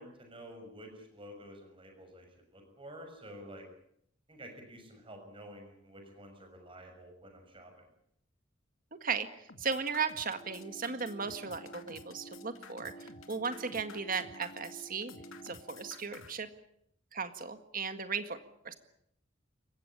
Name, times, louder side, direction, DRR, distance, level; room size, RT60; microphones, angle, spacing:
voice 1, 0.0-3.6 4.3-7.9, equal, 25° right, 4 dB, 6.5 m, -50 dB
voice 2, 9.0-15.1 15.4-16.5 17.1-18.4 18.6-18.7, right 5 dB, 45° right, 9 dB, 1.8 m, -36 dB
sound 1, 9.5-16.3, left 5 dB, 90° left, 2.4 m, -52 dB
sound 2, 10.2-15.9, right 2 dB, 30° left, 3.1 m, -51 dB
28.5 x 16.0 x 9.9 m, 0.71 s
head